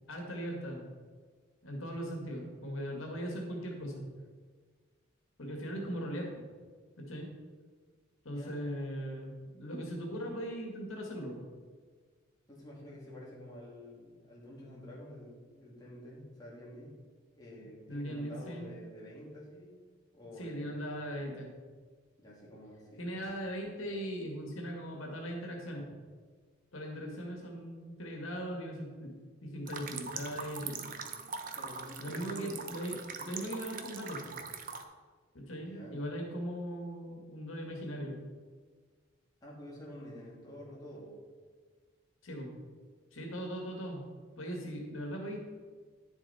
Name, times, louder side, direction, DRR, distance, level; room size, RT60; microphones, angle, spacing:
voice 1, 0.1-0.9 1.6-4.0 5.4-6.4 7.0-7.3 8.2-11.4 17.9-18.7 20.4-21.5 23.0-26.0 26.7-29.1 29.4-30.9 32.0-33.0 33.2-34.4 35.3-38.2 42.2-42.5 43.1-44.0 44.4-45.4, equal, 85° left, 1 dB, 1.9 m, -39 dB
voice 2, 8.3-8.7 12.5-16.9 17.3-19.8 20.1-20.7 22.2-23.2 31.5-32.7 33.1-33.3 35.6-36.1 39.4-41.2, equal, 20° left, -7 dB, 2.7 m, -49 dB
sound 1, 29.7-34.8, right 5 dB, 45° right, 0.8 m, -42 dB
10.5 x 7.2 x 4.2 m, 1.5 s
head